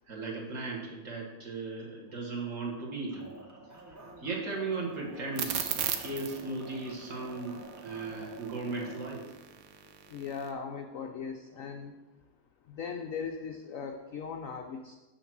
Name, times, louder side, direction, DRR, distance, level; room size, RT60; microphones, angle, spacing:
voice 1, 0.1-3.3 4.2-9.2, right 3 dB, 45° right, -1 dB, 1.6 m, -37 dB
sound 1, 3.1-9.1, right 2 dB, 25° right, 0.4 m, -49 dB
sound 2, 5.4-10.5, right 9 dB, 90° right, 1.4 m, -37 dB
voice 2, 10.1-11.9 12.7-15.0, left 6 dB, 70° left, 4 dB, 0.7 m, -38 dB
6.5 x 5.9 x 6.0 m, 1.1 s
omnidirectional pair, 2.0 m